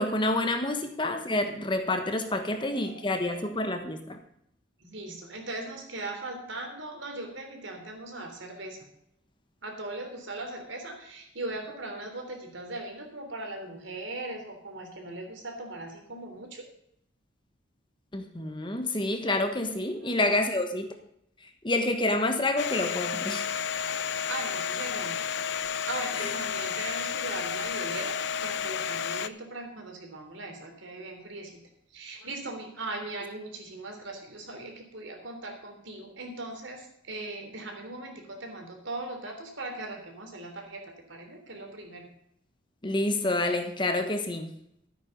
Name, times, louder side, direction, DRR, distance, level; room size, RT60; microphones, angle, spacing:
voice 1, 0.0-4.2 18.1-20.9 21.6-23.5 26.2-26.3 42.8-44.5, left 2 dB, 25° left, 6 dB, 1.2 m, -28 dB
voice 2, 2.4-3.5 4.8-8.8 9.6-16.6 20.0-20.2 24.0-25.2 25.9-31.6 31.9-42.1, right 2 dB, 70° right, 4 dB, 3.5 m, -39 dB
Domestic sounds home sounds, 22.6-29.3, left 7 dB, 55° left, 0.6 m, -31 dB
13.5 x 9.4 x 5.3 m, 0.74 s
head